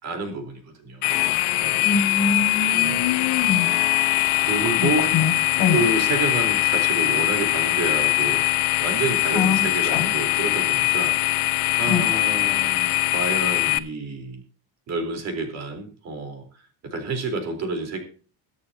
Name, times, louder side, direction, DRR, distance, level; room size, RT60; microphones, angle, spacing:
voice 1, 0.0-1.2 1.6-1.9 2.7-3.0 4.4-5.1 5.7-11.5 11.8-14.4 14.9-16.4 16.8-18.0, right 3 dB, 40° right, 5 dB, 4.0 m, -29 dB
sound 1, 1.0-13.8, left 22 dB, 85° left, 0.9 m, -22 dB
voice 2, 1.8-3.7 4.3-4.5 4.8-5.8 9.3-9.6 9.9-10.1 11.9-12.0, left 6 dB, 55° left, 4 dB, 5.1 m, -24 dB
22.5 x 8.4 x 2.8 m, 0.39 s
cardioid pair, 165°, 41 cm